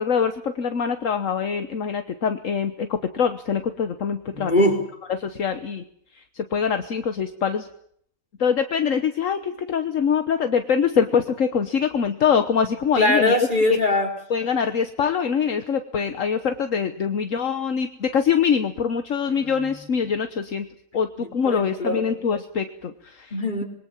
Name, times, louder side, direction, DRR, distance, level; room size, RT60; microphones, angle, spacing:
voice 1, 0.0-4.7 5.2-5.8 6.1-7.7 8.4-13.4 13.7-13.8 14.3-20.7 20.9-23.3, left 7 dB, 70° left, 8 dB, 1.5 m, -24 dB
voice 2, 4.3-4.8 13.0-14.1 19.3-19.8 21.2-22.0 23.3-23.6, left 1 dB, 35° left, 2 dB, 4.6 m, -22 dB
26.5 x 22.0 x 7.3 m, 0.65 s
omnidirectional pair, 1.4 m